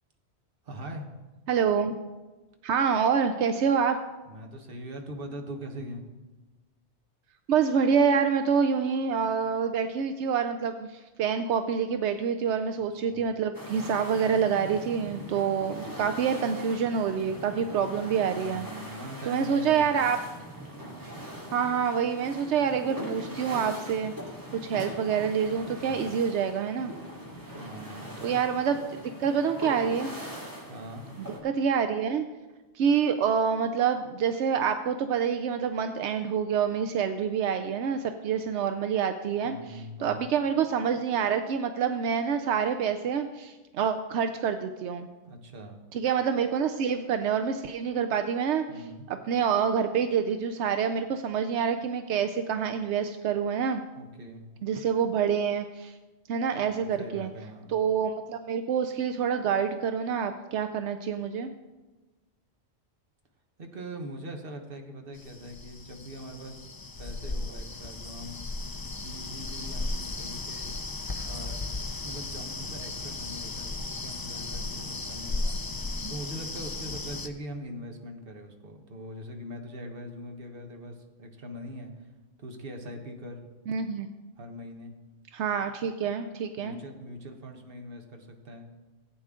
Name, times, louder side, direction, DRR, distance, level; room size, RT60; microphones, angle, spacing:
voice 1, 0.6-1.1 4.3-6.0 12.8-13.2 15.7-16.3 18.3-20.2 25.7-26.2 27.5-28.1 30.7-31.1 39.4-40.2 45.2-45.8 48.7-49.1 53.9-54.4 56.6-57.7 63.6-66.7 67.0-68.5 69.0-70.8 71.2-71.7 72.0-75.6 76.1-82.1 82.4-83.5 84.4-84.9 86.6-88.7, equal, 55° right, 4 dB, 1.4 m, -42 dB
voice 2, 1.5-1.9 2.6-4.0 7.5-18.7 19.3-20.2 21.5-24.1 24.6-26.9 28.2-28.8 29.2-30.1 31.4-32.3 32.7-45.1 45.9-53.8 54.6-56.0 56.3-57.3 57.7-61.5 83.7-84.1 85.3-86.8, right 7 dB, 85° right, 8 dB, 0.9 m, -27 dB
sound 1, 13.5-31.4, equal, 15° right, 2.4 m, -41 dB
sound 2, 65.1-77.3, left 3 dB, 30° left, 0.4 m, -35 dB
15.5 x 8.7 x 3.7 m, 1.2 s
omnidirectional pair, 1.1 m